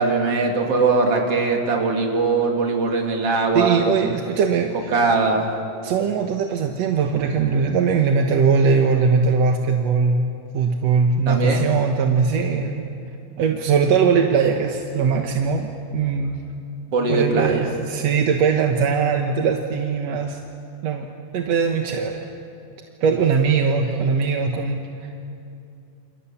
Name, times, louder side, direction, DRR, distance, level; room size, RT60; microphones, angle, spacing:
voice 1, 0.0-3.8 4.9-5.5 11.3-11.7 16.9-17.7 23.9-24.0, right 3 dB, 45° right, 1 dB, 3.6 m, -21 dB
voice 2, 3.5-4.9 5.8-12.8 13.4-16.4 17.1-20.4 20.8-21.1 21.3-22.3 23.0-25.1, right 5 dB, 60° right, 3 dB, 2.0 m, -20 dB
29.0 x 28.0 x 7.2 m, 2.6 s
omnidirectional pair, 4.0 m